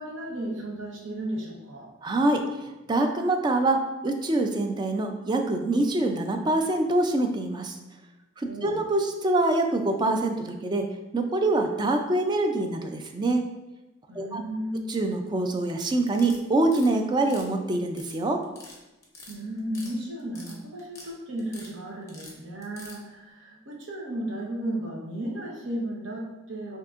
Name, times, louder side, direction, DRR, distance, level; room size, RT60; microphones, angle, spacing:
voice 1, 0.0-1.9 8.5-8.8 14.1-14.8 19.3-26.8, right 1 dB, 75° right, -2 dB, 0.9 m, -34 dB
voice 2, 2.0-2.4 2.9-7.8 8.4-10.9 11.1-13.4 14.2-14.4 14.9-18.4, right 2 dB, 20° right, 5 dB, 0.3 m, -25 dB
sound 1, 16.1-16.9 17.2-18.2 18.4-18.8 19.0-19.9 20.2-21.1 21.4-21.7 22.1-23.0, left 2 dB, 15° left, 0.7 m, -45 dB
5.9 x 2.8 x 2.4 m, 1.0 s
head